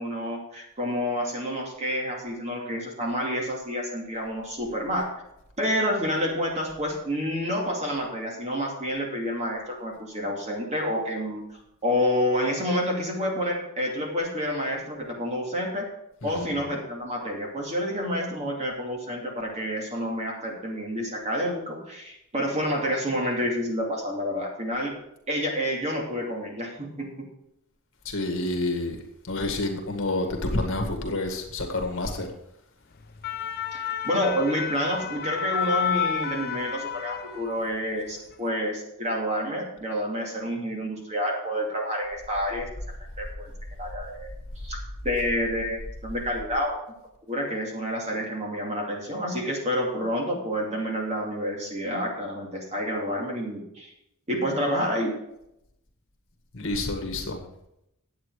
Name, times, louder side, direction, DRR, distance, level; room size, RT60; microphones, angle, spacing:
voice 1, 0.0-5.1 5.6-11.4 11.8-15.9 16.2-25.0 25.3-27.1 33.7-42.7 43.2-43.5 43.8-44.3 44.6-44.8 45.0-46.7 47.3-53.9 54.3-55.1, equal, 30° right, 0 dB, 2.6 m, -29 dB
voice 2, 16.2-16.5 28.1-29.0 29.2-32.3 56.5-57.4, left 2 dB, 60° left, 3 dB, 1.9 m, -28 dB
sound 1, 33.0-37.8 38.1-38.3, left 8 dB, 45° left, 0.7 m, -30 dB
10.0 x 8.5 x 4.8 m, 0.81 s
head